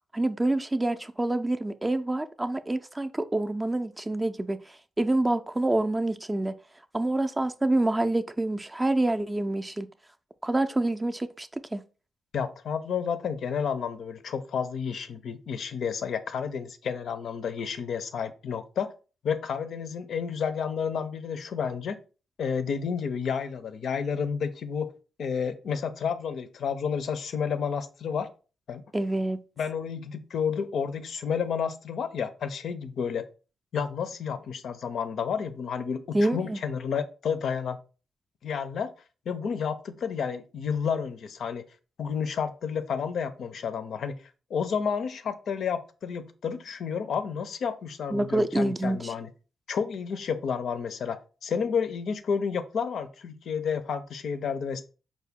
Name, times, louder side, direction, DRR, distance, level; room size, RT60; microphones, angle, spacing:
voice 1, 0.1-6.5 6.9-9.9 10.4-11.8 28.9-29.4 36.1-36.6 48.1-49.1, right 2 dB, 20° right, 0.3 m, -27 dB
voice 2, 12.3-18.9 19.2-22.0 22.4-24.9 25.2-28.3 28.7-28.8 29.6-33.3 33.7-37.8 38.4-38.9 39.3-41.6 42.0-44.1 44.5-49.3 49.7-54.8, left 6 dB, 70° left, 0.4 m, -31 dB
4.6 x 2.1 x 3.4 m
cardioid pair, 65°, 0 cm